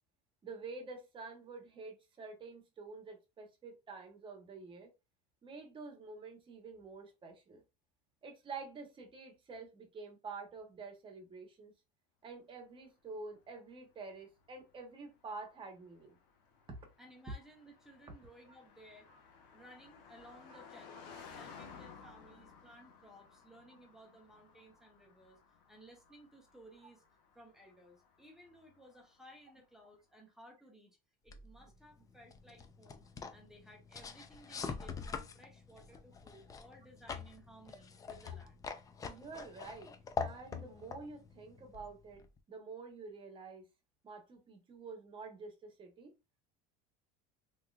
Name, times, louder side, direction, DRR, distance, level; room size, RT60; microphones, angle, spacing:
voice 1, 0.4-4.9 5.4-7.6 8.2-11.7 12.2-16.2 18.5-18.6 19.1-19.2 22.0-22.4 31.6-31.7 39.0-42.2 42.5-43.7 44.0-46.1, right 4 dB, 25° right, 1.1 m, -48 dB
Car passing by, 13.1-29.6, left 6 dB, 80° left, 1.2 m, -58 dB
voice 2, 17.0-19.1 19.5-25.4 25.7-27.0 27.3-31.0 31.2-33.0 33.3-38.7, equal, ahead, 0.8 m, -58 dB
sound 1, 31.3-42.4, left 5 dB, 15° left, 0.4 m, -45 dB
3.5 x 3.1 x 2.4 m
cardioid pair, 140°, 20 cm